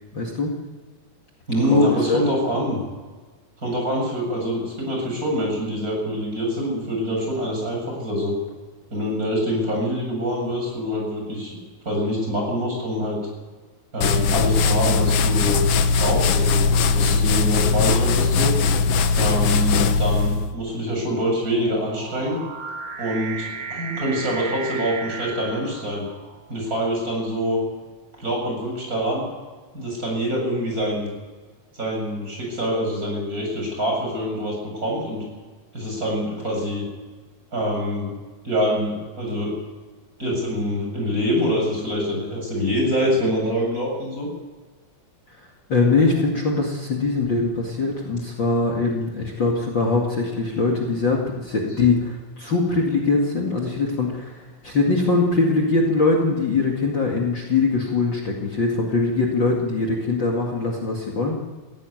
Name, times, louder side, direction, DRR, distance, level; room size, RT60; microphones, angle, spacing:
voice 1, 0.1-0.5 1.7-2.2 45.4-45.5 45.7-61.4, left 3 dB, 40° left, -1 dB, 2.7 m, -22 dB
voice 2, 1.5-2.8 3.6-8.4 8.9-13.2 13.9-15.7 16.0-18.5 19.2-22.4 23.0-26.1 26.5-27.6 28.2-29.2 29.7-31.1 31.7-35.2 35.7-36.8 37.5-38.1 38.4-39.5 40.2-44.3 48.8-48.9, equal, 25° right, -1 dB, 7.5 m, -25 dB
sound 1, 14.0-20.5, left 4 dB, 65° left, 1.8 m, -20 dB
sound 2, 19.0-26.5, right 4 dB, 65° right, 3.1 m, -36 dB
17.5 x 16.5 x 9.4 m, 1.4 s
omnidirectional pair, 3.3 m